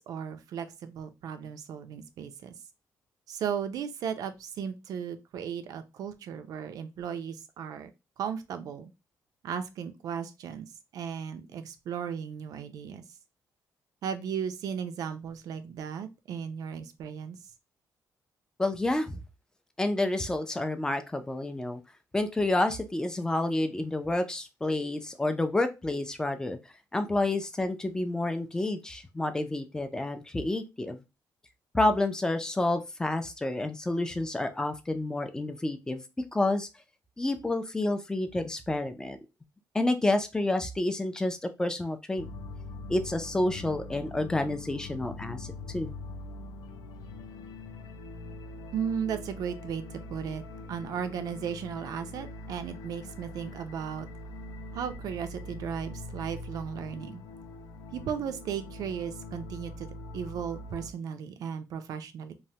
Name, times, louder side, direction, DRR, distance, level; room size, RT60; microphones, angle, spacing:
voice 1, 0.0-2.5 3.3-7.9 8.2-8.9 9.4-10.7 10.9-13.0 14.0-17.4 48.7-50.4 50.7-54.1 54.7-57.2 57.9-59.9 60.1-62.3, right 7 dB, 70° right, 0.4 m, -36 dB
voice 2, 18.6-19.2 19.8-21.8 22.1-26.6 26.9-31.0 31.7-36.0 36.3-36.7 37.2-39.2 39.7-42.3 42.9-45.5 45.7-45.9, left 2 dB, 10° left, 0.3 m, -29 dB
sound 1, 42.2-60.9, left 2 dB, 80° left, 0.4 m, -43 dB
3.1 x 2.1 x 2.7 m
cardioid pair, 155°, 7 cm